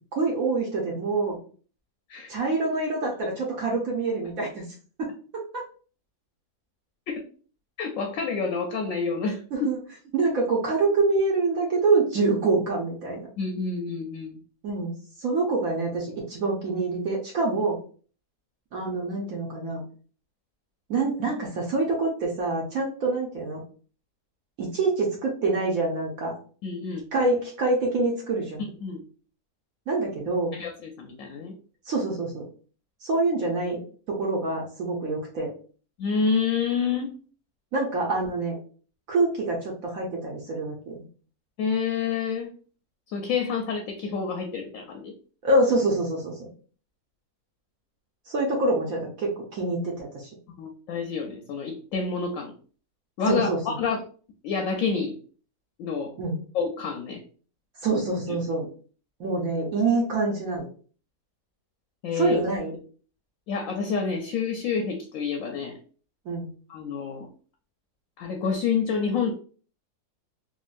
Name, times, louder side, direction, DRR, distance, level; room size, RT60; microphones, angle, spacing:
voice 1, 0.2-1.4 2.3-4.6 5.0-5.6 9.5-9.8 10.1-13.3 14.6-14.9 15.2-17.8 18.7-19.8 20.9-23.6 24.6-26.3 27.1-28.7 29.9-30.5 31.9-32.4 33.0-33.8 34.1-35.5 37.7-38.5 39.1-41.0 45.4-46.5 48.3-50.3 53.3-53.6 56.2-56.4 57.8-58.7 59.2-60.7 62.1-62.7 66.3-66.5, right 3 dB, 65° right, -2 dB, 1.1 m, -26 dB
voice 2, 7.8-9.7 13.4-14.4 26.6-27.0 28.6-29.0 30.5-31.5 36.0-37.1 41.6-42.5 43.1-45.1 50.6-52.5 53.2-54.0 54.4-55.2 55.8-56.1 56.5-57.2 62.0-62.4 63.5-65.7 66.7-67.3 68.2-69.3, left 5 dB, 70° left, 2 dB, 0.8 m, -28 dB
3.8 x 2.1 x 2.4 m, 0.41 s
omnidirectional pair, 1.7 m